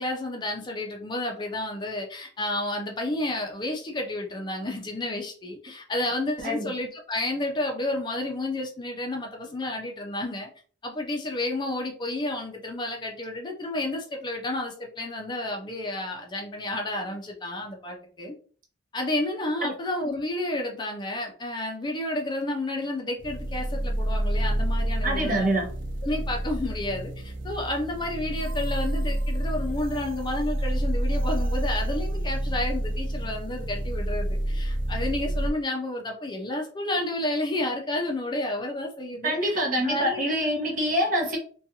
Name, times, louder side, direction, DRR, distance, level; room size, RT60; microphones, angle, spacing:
voice 1, 0.0-10.5 10.8-18.3 18.9-25.5 26.0-40.2, left 1 dB, 25° left, 1 dB, 0.4 m, -31 dB
sound 1, 23.2-35.5, right 1 dB, 90° right, 0.6 m, -28 dB
voice 2, 25.0-25.7 39.2-41.4, equal, 45° right, 0 dB, 0.9 m, -25 dB
2.4 x 2.3 x 2.7 m, 0.42 s
head